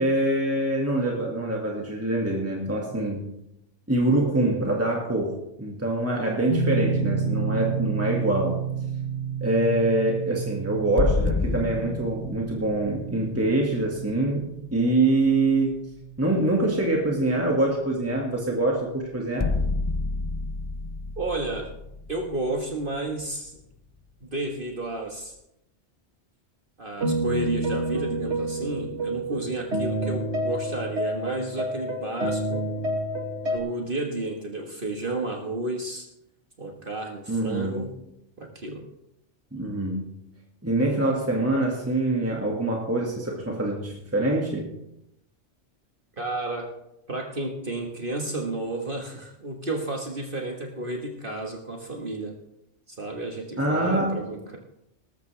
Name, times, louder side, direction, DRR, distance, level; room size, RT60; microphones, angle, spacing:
voice 1, 0.0-3.3 3.9-8.6 9.4-15.8 16.2-19.5 37.3-37.9 39.5-40.1 40.6-44.7 53.6-54.3, right 2 dB, 10° right, -1 dB, 2.0 m, -25 dB
sound 1, 6.5-19.4, right 5 dB, 55° left, 3.5 m, -32 dB
sound 2, 11.0-14.7 18.4-18.5 19.4-23.3, left 3 dB, 35° left, 0.4 m, -30 dB
voice 2, 21.2-21.7 22.1-23.6 24.2-25.4 26.8-32.7 33.5-36.1 36.6-37.9 38.4-38.8 46.2-46.7 47.1-52.3 52.9-54.6, right 2 dB, 50° right, 1 dB, 1.7 m, -32 dB
sound 3, 27.0-33.6, right 1 dB, 75° right, 2.1 m, -28 dB
19.5 x 13.5 x 3.4 m, 0.82 s
omnidirectional pair, 1.2 m